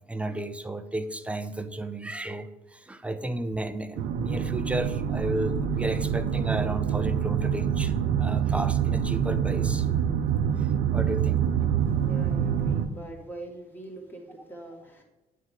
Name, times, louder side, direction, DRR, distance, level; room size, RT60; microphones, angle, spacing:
voice 1, 0.1-9.9 10.6-11.5, right 1 dB, 5° right, 10 dB, 0.6 m, -33 dB
sound 1, 4.0-12.9, right 8 dB, 85° right, 0.7 m, -26 dB
voice 2, 11.9-15.0, right 2 dB, 10° left, 0 dB, 2.1 m, -43 dB
9.2 x 3.7 x 6.4 m, 1.0 s
cardioid pair, 110°, 17 cm